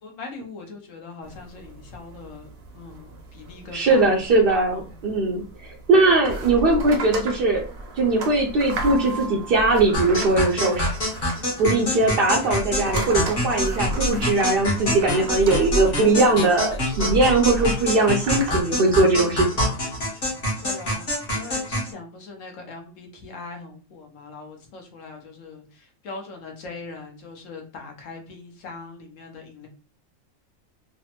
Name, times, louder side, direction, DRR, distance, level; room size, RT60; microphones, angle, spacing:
voice 1, 0.0-2.5 2.7-4.2 4.7-4.9 20.6-21.0 21.3-29.7, left 3 dB, 70° left, 2 dB, 1.1 m, -40 dB
sound 1, 1.2-18.6, right 1 dB, 85° right, 1.1 m, -34 dB
voice 2, 3.7-7.6 8.0-10.9 11.6-19.5, right 2 dB, 65° right, -1 dB, 0.5 m, -20 dB
sound 2, 9.9-21.9, left 1 dB, 45° left, 1.3 m, -26 dB
3.3 x 2.1 x 2.8 m, 0.38 s
omnidirectional pair, 1.4 m